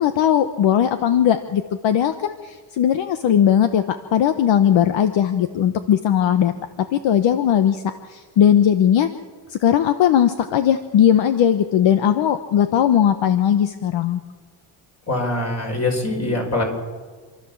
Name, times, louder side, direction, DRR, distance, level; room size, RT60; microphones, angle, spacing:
voice 1, 0.0-6.5 6.9-7.8 8.1-9.1 9.5-14.2, left 9 dB, 65° left, 10 dB, 1.1 m, -18 dB
voice 2, 15.1-16.6, left 2 dB, 30° left, 2 dB, 5.4 m, -23 dB
27.5 x 13.0 x 7.2 m, 1.5 s
cardioid pair, 125°, 49 cm